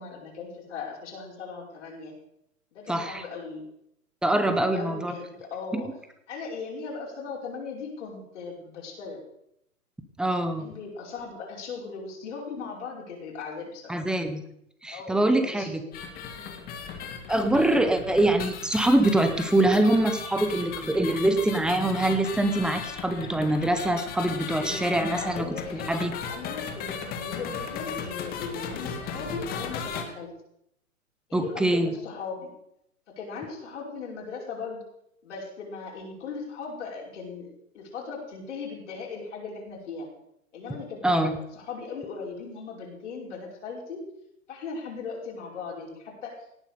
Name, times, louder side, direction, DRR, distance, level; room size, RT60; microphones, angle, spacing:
voice 1, 0.0-2.1 2.7-3.6 4.6-5.9 6.3-9.2 10.6-14.0 14.9-16.0 16.3-16.6 17.7-17.9 24.4-24.8 25.1-25.9 26.3-30.3 31.3-32.5 33.1-34.8 35.2-37.5 37.7-40.1 40.5-44.0 44.5-46.3, left 4 dB, 55° left, -2 dB, 5.3 m, -38 dB
voice 2, 2.9-3.2 4.2-5.1 5.7-5.8 10.2-10.7 13.9-14.4 14.8-15.8 17.3-25.5 25.7-26.1 31.3-32.0 41.0-41.3, right 1 dB, ahead, 8 dB, 0.7 m, -24 dB
sound 1, 15.9-30.0, left 6 dB, 20° left, 1.9 m, -36 dB
18.0 x 9.0 x 6.6 m, 0.77 s
hypercardioid pair, 130°, 43 cm